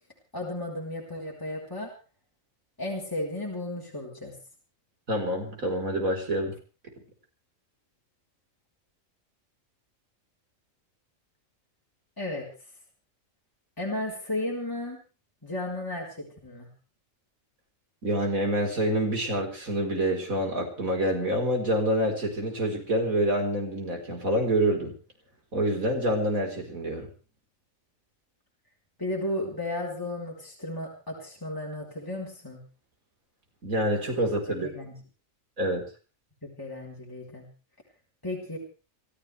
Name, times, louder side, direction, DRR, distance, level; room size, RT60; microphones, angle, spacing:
voice 1, 0.3-1.9 2.8-4.4 12.2-12.5 13.8-15.0 15.4-16.7 29.0-32.6 34.6-35.0 36.4-37.5 38.2-38.6, left 1 dB, 15° left, -3 dB, 4.2 m, -34 dB
voice 2, 5.1-6.5 18.0-24.9 25.5-27.1 33.6-34.7 35.6-35.8, right 1 dB, 85° right, 2 dB, 4.9 m, -27 dB
29.0 x 13.5 x 3.4 m, 0.36 s
omnidirectional pair, 1.4 m